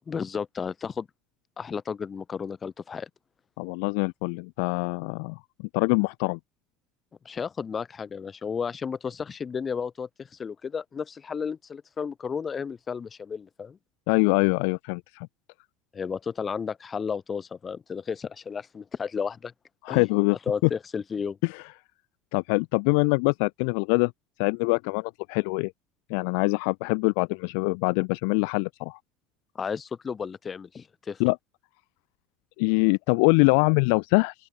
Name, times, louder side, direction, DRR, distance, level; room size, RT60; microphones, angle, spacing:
voice 1, 0.1-1.1 1.6-3.1 7.3-13.8 15.9-19.5 19.9-20.1 20.5-21.4 29.6-31.2, left 6 dB, 20° left, 5.2 m, -33 dB
voice 2, 3.6-5.4 5.7-6.4 14.1-15.3 19.8-20.4 21.4-21.5 22.3-24.1 24.4-25.7 26.1-29.0 31.2-31.4 32.6-34.3, left 39 dB, 75° left, 0.9 m, -24 dB
open air
cardioid pair, 160°, 0 cm